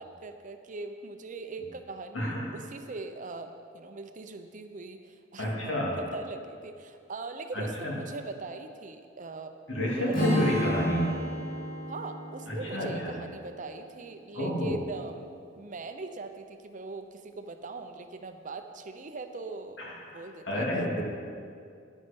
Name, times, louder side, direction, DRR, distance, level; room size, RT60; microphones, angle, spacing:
voice 1, 0.0-5.7 6.0-9.5 10.0-10.5 11.9-15.3 15.6-19.8 20.1-20.7, right 3 dB, 40° right, 7 dB, 0.6 m, -41 dB
voice 2, 5.4-5.9 7.5-7.9 9.7-11.1 12.5-13.2 14.3-14.8 19.8-21.0, equal, 75° left, -3 dB, 2.8 m, -30 dB
Strum, 10.1-14.3, equal, 45° left, 3.0 m, -32 dB
10.0 x 9.6 x 5.3 m, 2.3 s
head